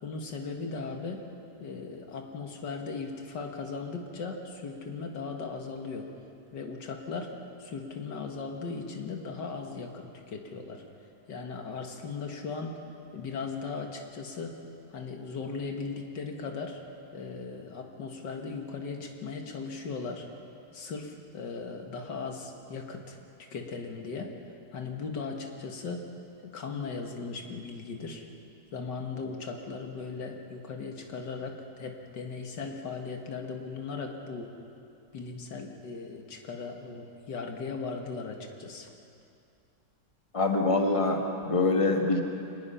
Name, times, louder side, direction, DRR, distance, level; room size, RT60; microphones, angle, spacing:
voice 1, 0.0-1.2 1.6-6.1 6.5-7.3 7.6-10.8 11.3-12.8 13.1-14.5 14.9-16.8 17.1-20.3 20.7-24.3 24.7-26.0 26.4-28.3 28.7-34.5 35.1-38.9, left 4 dB, 90° left, 3 dB, 2.3 m, -38 dB
voice 2, 40.3-42.2, left 3 dB, 20° left, 2 dB, 1.7 m, -25 dB
25.0 x 20.0 x 5.7 m, 2.6 s
omnidirectional pair, 1.8 m